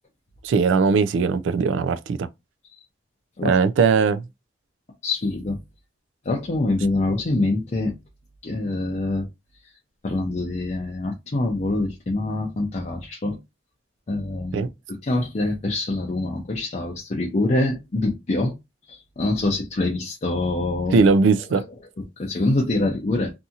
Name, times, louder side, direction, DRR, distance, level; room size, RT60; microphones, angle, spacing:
voice 1, 0.4-2.3 3.4-4.2 14.5-14.7 20.9-21.6, right 5 dB, 85° right, 0.3 m, -19 dB
voice 2, 5.0-5.6 6.2-7.9 8.4-9.3 9.6-9.7 10.0-13.4 14.1-14.6 14.9-18.6 18.9-21.1 21.5-21.7 22.0-23.3, left 2 dB, 40° left, 0.5 m, -25 dB
2.7 x 2.6 x 2.4 m
head